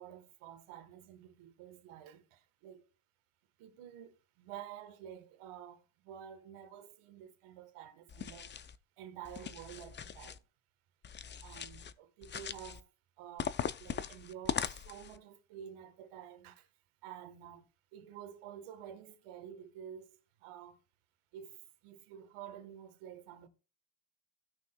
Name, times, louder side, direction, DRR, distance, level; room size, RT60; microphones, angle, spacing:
voice 1, 0.0-2.8 3.6-8.5 9.0-10.4 11.4-12.9 13.2-16.7 17.0-20.2 20.4-20.8 21.3-21.6 21.8-23.5, right 9 dB, 85° right, 1.4 m, -50 dB
sound 1, 8.1-8.8 9.2-10.4 11.0-11.9 12.2-12.8 13.4-15.2, left 8 dB, 25° left, 0.4 m, -40 dB
16.0 x 5.9 x 2.2 m
cardioid pair, 95°, 49 cm